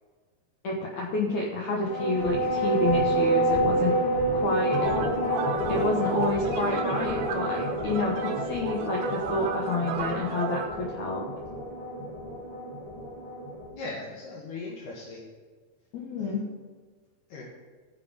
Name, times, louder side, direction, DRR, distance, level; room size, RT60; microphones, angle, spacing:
voice 1, 0.6-4.0 4.3-4.9 5.7-11.2 15.9-16.4, left 2 dB, 90° left, -1 dB, 1.6 m, -29 dB
sound 1, 1.8-13.7, right 1 dB, 40° left, 2.4 m, -28 dB
sound 2, 4.7-10.7, right 6 dB, 75° right, 2.0 m, -34 dB
voice 2, 13.7-15.2 16.2-16.4 17.3-17.4, left 3 dB, 60° left, -3 dB, 2.4 m, -39 dB
14.5 x 5.3 x 5.1 m, 1.5 s
omnidirectional pair, 5.1 m